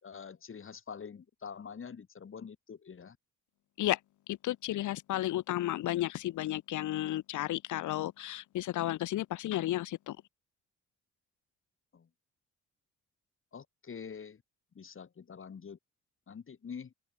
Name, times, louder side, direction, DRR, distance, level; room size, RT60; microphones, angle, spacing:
voice 1, 0.0-3.2 5.3-5.4 11.9-12.1 13.5-14.4 14.7-15.8 16.3-16.9, left 6 dB, 45° left, 5.6 m, -46 dB
voice 2, 4.3-10.2, left 14 dB, 80° left, 1.5 m, -33 dB
open air
cardioid pair, 90°, 30 cm